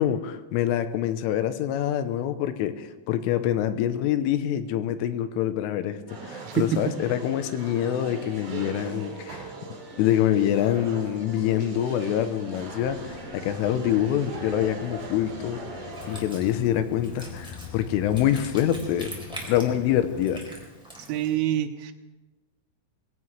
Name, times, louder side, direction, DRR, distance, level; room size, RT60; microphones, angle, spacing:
voice 1, 0.0-9.5 10.0-15.6 16.1-19.1 19.5-20.4, left 11 dB, 90° left, 10 dB, 3.4 m, -25 dB
sound 1, 6.1-16.2, right 3 dB, 45° right, 3.9 m, -39 dB
voice 2, 6.5-7.0 21.1-21.9, right 10 dB, 85° right, 6 dB, 3.4 m, -26 dB
sound 2, 12.6-20.3, left 4 dB, 70° left, 2.3 m, -43 dB
Wind instrument woodwind instrument, 15.9-21.4, right 1 dB, ahead, 2.6 m, -44 dB
22.0 x 16.5 x 3.3 m, 1.1 s
omnidirectional pair, 5.6 m